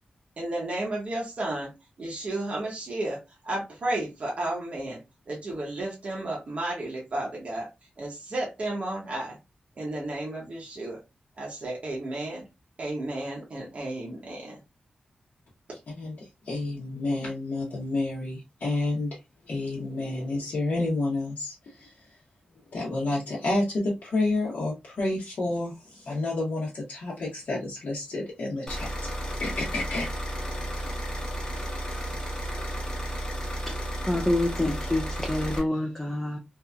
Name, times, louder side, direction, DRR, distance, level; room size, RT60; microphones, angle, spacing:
voice 1, 0.4-1.7 2.0-5.0 5.3-7.7 8.0-9.4 9.8-11.0 11.4-12.5 12.8-14.6, right 2 dB, 50° right, 0.8 m, -32 dB
voice 2, 16.0-19.2 19.4-22.1 22.7-29.1 29.4-30.1, left 2 dB, 70° left, 0.9 m, -30 dB
sound 1, 28.7-35.6, right 1 dB, 25° left, 0.9 m, -33 dB
voice 3, 34.1-36.4, left 1 dB, 10° left, 0.4 m, -27 dB
2.8 x 2.5 x 2.2 m
wide cardioid pair, 145°, 3 cm